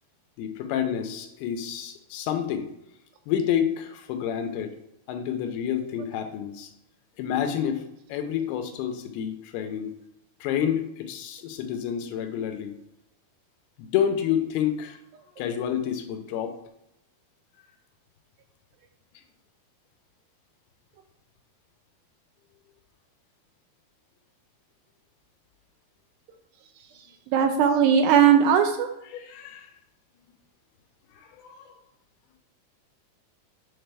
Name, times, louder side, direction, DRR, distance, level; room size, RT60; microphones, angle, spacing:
voice 1, 0.4-2.7 3.3-4.8 5.1-6.7 7.2-7.8 8.1-10.0 10.4-12.8 13.8-15.0 15.4-16.6 29.0-29.7 31.1-31.7, left 9 dB, 85° left, 7 dB, 2.6 m, -29 dB
voice 2, 27.3-28.9, right 8 dB, 80° right, 6 dB, 2.3 m, -18 dB
7.6 x 4.0 x 3.3 m, 0.82 s
omnidirectional pair, 4.5 m